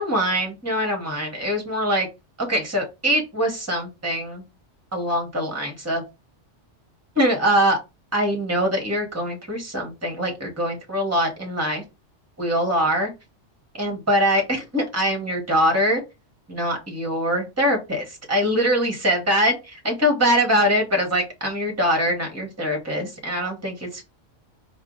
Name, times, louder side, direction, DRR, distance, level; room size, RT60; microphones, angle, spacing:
voice 1, 0.0-2.1 2.4-4.4 4.9-6.0 7.1-7.8 8.1-11.8 12.4-13.1 13.8-16.0 16.5-24.1, equal, 15° right, 2 dB, 1.2 m, -23 dB
4.5 x 2.4 x 3.8 m, 0.25 s
omnidirectional pair, 1.2 m